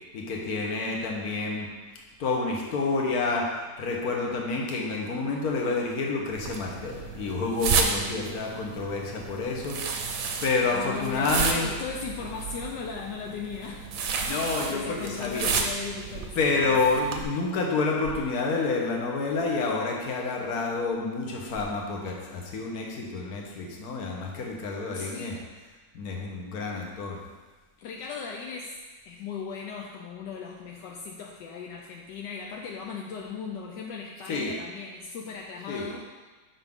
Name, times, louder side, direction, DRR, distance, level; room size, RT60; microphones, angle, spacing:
voice 1, 0.1-1.7 2.2-3.5 3.8-11.7 14.2-15.5 16.4-25.4 25.9-27.2 34.3-34.5 35.7-35.9, left 3 dB, 60° left, -1 dB, 1.5 m, -29 dB
sound 1, 6.3-17.2, right 5 dB, 60° right, 1.0 m, -32 dB
voice 2, 10.7-13.9 14.7-16.4 16.6-16.8 24.9-25.4 27.8-28.8 29.1-36.1, left 5 dB, 80° left, -1 dB, 1.3 m, -37 dB
7.2 x 5.9 x 3.6 m, 1.3 s
omnidirectional pair, 2.0 m